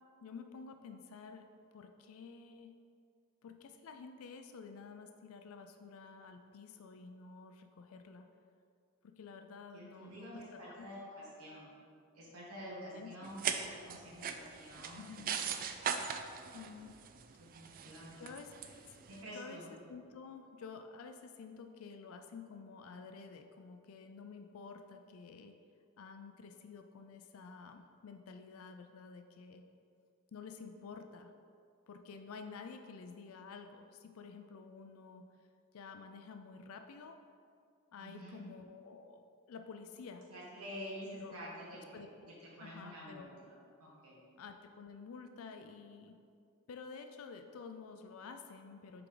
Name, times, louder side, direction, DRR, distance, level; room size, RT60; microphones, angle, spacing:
voice 1, 0.2-1.5 1.7-2.8 3.4-8.3 9.0-10.9 12.9-13.3 15.0-15.4 16.5-16.9 18.2-18.5 19.1-19.6 19.9-25.5 26.0-29.7 30.3-31.3 31.9-35.3 35.7-37.2 37.9-40.3 41.0-41.4 41.9-42.3 42.6-43.3 44.4-46.2 46.7-49.1, left 5 dB, 65° left, 6 dB, 0.4 m, -51 dB
voice 2, 9.7-11.7 12.1-15.5 17.4-18.2 19.1-19.7 38.0-38.4 40.3-42.1 42.4-43.5 43.8-44.2, equal, 75° right, -6 dB, 1.4 m, -48 dB
sound 1, 13.2-19.2, right 7 dB, 40° right, 0.3 m, -40 dB
6.9 x 4.7 x 3.8 m, 2.4 s
head